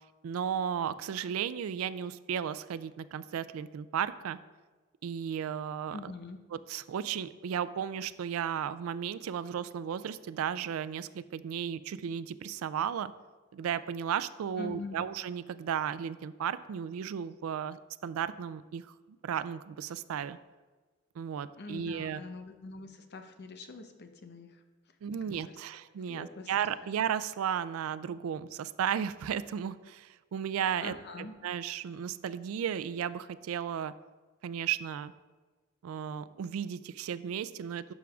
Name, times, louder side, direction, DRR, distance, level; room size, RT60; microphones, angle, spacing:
voice 1, 0.2-4.4 5.0-6.1 6.5-13.1 13.5-18.8 19.2-20.4 21.2-22.2 25.0-33.9 34.4-35.1 35.8-37.9, right 8 dB, 85° right, 15 dB, 0.3 m, -34 dB
voice 2, 5.9-6.4 14.6-15.1 21.6-24.6 25.2-25.3 26.1-26.5 30.8-31.3, left 3 dB, 55° left, 7 dB, 0.7 m, -44 dB
11.5 x 6.1 x 2.3 m, 1.3 s
head